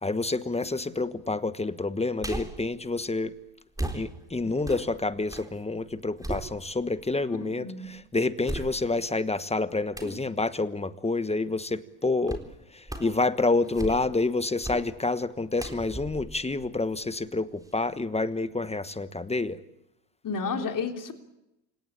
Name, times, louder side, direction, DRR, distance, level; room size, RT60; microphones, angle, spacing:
voice 1, 0.0-3.3 3.9-12.4 12.7-19.6, left 3 dB, 15° left, 13 dB, 1.3 m, -28 dB
sound 1, 2.2-2.7 3.7-5.5 5.9-7.0 7.5-7.6 8.4-9.1 9.9-10.2 12.3-12.5 12.9-13.2 13.6-14.2 14.6-14.9 15.6-17.2 17.6-17.7, right 1 dB, 5° right, 4.0 m, -37 dB
voice 2, 7.4-7.9 20.2-21.1, left 5 dB, 40° left, 4 dB, 3.6 m, -31 dB
28.5 x 17.5 x 8.8 m, 0.90 s
supercardioid pair, 75°, 47 cm